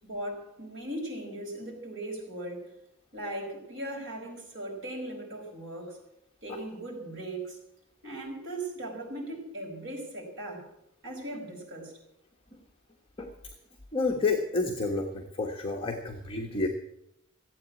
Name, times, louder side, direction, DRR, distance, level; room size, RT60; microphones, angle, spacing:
voice 1, 0.0-2.7 3.1-6.0 6.4-7.6 8.0-10.7 11.0-11.9, right 1 dB, 60° right, -1 dB, 5.1 m, -38 dB
voice 2, 13.9-16.7, left 3 dB, 25° left, 0 dB, 1.4 m, -29 dB
15.5 x 8.6 x 8.4 m, 0.79 s
head